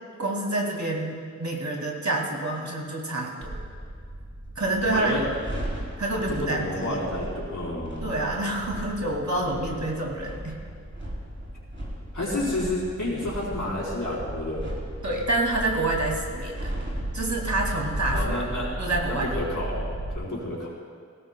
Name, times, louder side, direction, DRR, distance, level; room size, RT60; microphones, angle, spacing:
voice 1, 0.2-3.6 4.6-5.1 6.0-7.0 8.0-10.6 15.0-16.7 17.1-18.3 18.8-19.4, right 2 dB, 65° right, -1 dB, 2.4 m, -27 dB
sound 1, 3.4-20.1, right 1 dB, 40° right, 3.3 m, -35 dB
voice 2, 4.9-5.2 6.3-8.1 12.1-14.6 18.1-18.8 19.1-19.8 20.1-20.7, left 1 dB, 90° left, -6 dB, 4.0 m, -30 dB
19.0 x 17.0 x 2.2 m, 2.1 s
wide cardioid pair, 55°, 30 cm